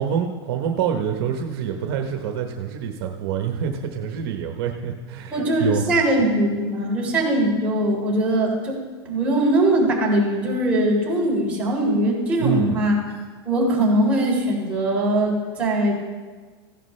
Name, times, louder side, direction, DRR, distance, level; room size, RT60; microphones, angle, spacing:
voice 1, 0.0-5.9 12.4-12.8, right 8 dB, 65° right, 4 dB, 1.1 m, -26 dB
voice 2, 5.3-8.8 9.1-13.0 13.5-15.9, right 1 dB, 10° right, -6 dB, 3.8 m, -21 dB
16.0 x 11.0 x 3.3 m, 1.4 s
supercardioid pair, 145°, 14 cm